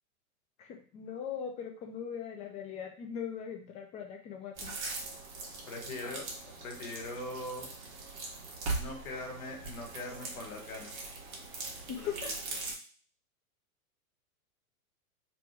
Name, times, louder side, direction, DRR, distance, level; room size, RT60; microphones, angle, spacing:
voice 1, 0.6-4.7 11.9-12.3, left 8 dB, 15° left, 3 dB, 0.4 m, -40 dB
sound 1, 4.6-12.7, right 3 dB, 50° right, 1.2 m, -41 dB
voice 2, 5.7-7.7 8.7-11.0 12.0-12.3, left 2 dB, 75° left, 1 dB, 1.5 m, -41 dB
3.1 x 2.6 x 3.4 m, 0.41 s
hypercardioid pair, 125°, 43 cm